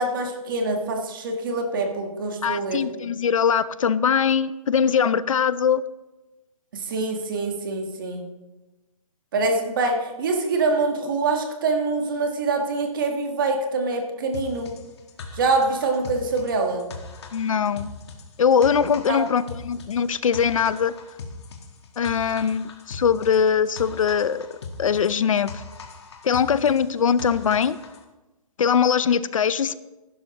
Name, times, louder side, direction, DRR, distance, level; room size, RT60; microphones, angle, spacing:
voice 1, 0.0-2.8 6.7-8.3 9.3-14.7 15.3-16.9 19.1-19.2, right 3 dB, 35° right, 4 dB, 1.4 m, -25 dB
voice 2, 2.4-5.8 17.3-17.9 18.4-20.9 22.0-24.5 24.8-25.6 26.2-27.8 28.6-29.7, left 7 dB, 60° left, 16 dB, 0.6 m, -21 dB
sound 1, 14.3-28.0, left 4 dB, 45° left, 1.5 m, -40 dB
16.0 x 11.5 x 3.0 m, 1.1 s
hypercardioid pair, 170°, 19 cm